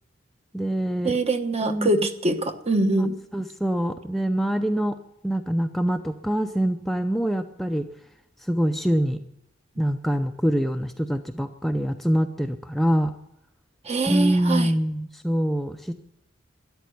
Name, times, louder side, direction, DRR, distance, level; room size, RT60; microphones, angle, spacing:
voice 1, 0.5-1.2 1.6-1.9 3.0-3.1 3.3-5.0 5.2-7.9 8.5-9.2 9.8-13.1 14.1-15.9, equal, ahead, 5 dB, 0.6 m, -24 dB
voice 2, 1.0-3.2 13.9-14.7, right 2 dB, 35° right, 8 dB, 1.2 m, -24 dB
13.0 x 11.0 x 9.4 m, 0.81 s
head